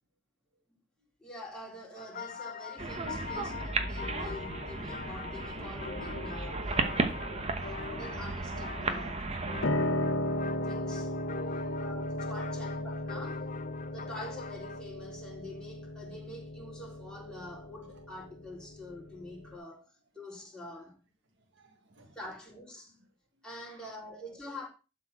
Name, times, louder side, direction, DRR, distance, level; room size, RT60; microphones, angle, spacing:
voice 1, 1.2-6.7 7.6-9.2 10.6-11.1 11.8-13.4 13.9-21.0 22.2-22.9 23.4-24.7, left 1 dB, 5° left, 3.5 m, -46 dB
sound 1, 2.0-14.8, left 6 dB, 40° left, 0.5 m, -43 dB
sound 2, 2.8-9.7, right 3 dB, 35° right, 1.1 m, -34 dB
voice 2, 6.8-7.2 10.5-10.6 11.4-11.9 20.7-20.9 21.5-22.2 23.6-24.2, right 1 dB, 60° right, 1.5 m, -58 dB
Piano, 9.6-19.6, left 1 dB, 70° left, 1.3 m, -35 dB
11.5 x 4.5 x 6.2 m
head